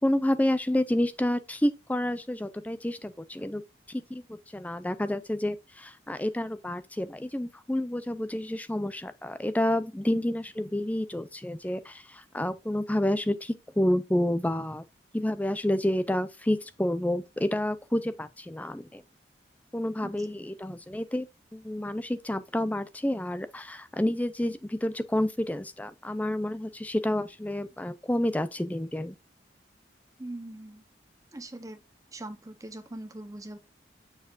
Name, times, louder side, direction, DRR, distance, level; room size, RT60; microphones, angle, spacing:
voice 1, 0.0-3.6 3.9-14.8 15.1-19.0 19.7-21.3 21.5-29.2, left 1 dB, 10° left, 0.4 m, -29 dB
voice 2, 30.2-30.8 31.3-31.8 32.1-33.6, right 1 dB, 20° right, 0.8 m, -41 dB
7.2 x 6.4 x 2.5 m
head